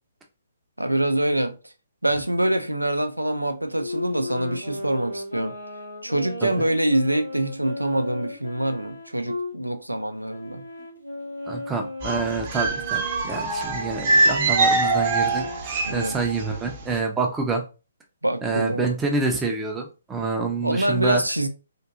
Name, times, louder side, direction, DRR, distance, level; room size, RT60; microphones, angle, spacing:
voice 1, 0.8-1.6 2.0-5.6 6.0-10.6 15.8-16.2 18.2-19.0 20.6-21.5, right 1 dB, 90° right, 0.4 m, -25 dB
Wind instrument woodwind instrument, 3.7-9.5 10.3-15.7, left 1 dB, 90° left, 1.8 m, -36 dB
voice 2, 11.5-17.6 18.4-21.2, right 4 dB, 10° right, 0.6 m, -27 dB
sound 1, 12.0-16.5 16.7-16.9, right 3 dB, 35° right, 0.8 m, -23 dB
3.6 x 2.7 x 2.4 m
figure-of-eight pair, 130°, 0 cm